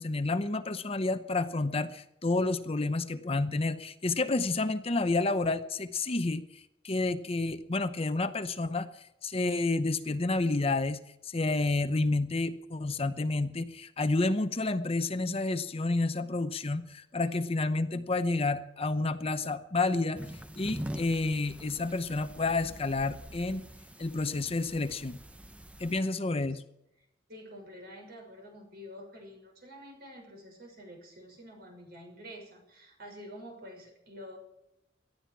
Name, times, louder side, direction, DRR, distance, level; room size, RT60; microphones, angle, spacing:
voice 1, 0.0-6.4 6.8-20.2 20.6-23.6 24.0-25.2 25.8-26.6, left 3 dB, 35° left, 10 dB, 0.8 m, -30 dB
sound 1, 20.1-26.0, equal, 5° right, 0.7 m, -44 dB
voice 2, 26.0-26.5 27.3-34.4, equal, 60° right, 2 dB, 6.1 m, -48 dB
18.5 x 13.0 x 4.7 m, 0.84 s
head